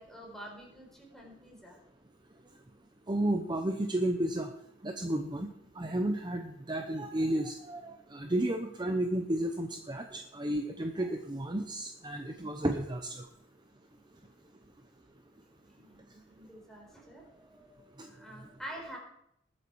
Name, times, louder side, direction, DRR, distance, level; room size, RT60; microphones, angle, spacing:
voice 1, 0.0-1.8 15.7-19.0, equal, ahead, -1 dB, 4.5 m, -48 dB
voice 2, 3.1-4.5 4.8-5.5 5.8-13.2, right 1 dB, 25° right, 5 dB, 0.8 m, -32 dB
20.5 x 8.8 x 4.8 m, 0.76 s
head